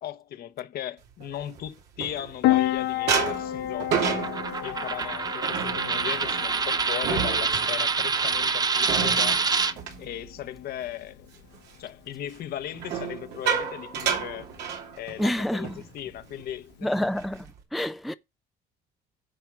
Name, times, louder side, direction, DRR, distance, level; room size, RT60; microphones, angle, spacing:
voice 1, 0.0-4.3 4.6-9.5 10.0-11.3 11.8-14.5 15.0-15.7 15.9-16.9, left 11 dB, 65° left, 1.1 m, -37 dB
sound 1, 1.2-2.6 3.1-10.9 11.2-11.6 12.7-15.3 15.6-15.8 16.2-16.4 16.9-17.6, right 7 dB, 85° right, 2.8 m, -31 dB
Piano, 2.4-17.4, left 14 dB, 85° left, 0.9 m, -33 dB
Coin (dropping), 4.2-9.7, right 4 dB, 25° right, 0.8 m, -26 dB
voice 2, 15.2-15.8 16.8-17.5 17.7-18.1, left 1 dB, ahead, 0.5 m, -27 dB
10.0 x 6.0 x 4.8 m
cardioid pair, 110°, 17 cm